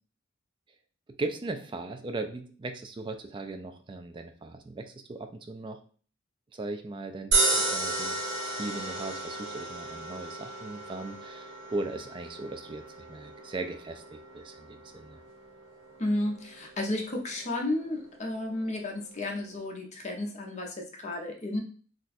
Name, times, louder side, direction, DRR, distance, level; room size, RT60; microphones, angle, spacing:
voice 1, 1.2-5.8 6.5-8.1 8.6-12.8 13.1-14.0 14.3-15.2, right 2 dB, 25° right, 6 dB, 0.3 m, -38 dB
sound 1, 7.3-19.7, right 2 dB, 60° right, 1.0 m, -34 dB
voice 2, 16.0-21.6, left 1 dB, 35° left, 1 dB, 0.6 m, -32 dB
2.4 x 2.2 x 4.0 m, 0.42 s
head